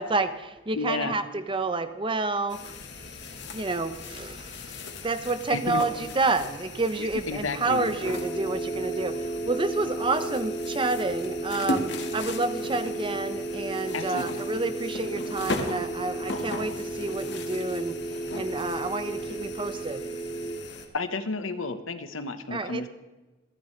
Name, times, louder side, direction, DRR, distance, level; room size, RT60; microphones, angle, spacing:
voice 1, 0.0-2.7 3.5-20.1 22.5-22.9, right 3 dB, 25° right, 11 dB, 0.7 m, -29 dB
voice 2, 0.8-1.2 5.5-5.8 7.3-7.9 13.9-14.4 20.9-22.9, left 3 dB, 85° left, 10 dB, 1.1 m, -31 dB
sound 1, 2.5-20.9, left 2 dB, 60° left, 1.6 m, -38 dB
sound 2, 8.0-20.6, right 2 dB, 30° left, 2.6 m, -34 dB
27.0 x 11.0 x 3.2 m, 1.2 s
head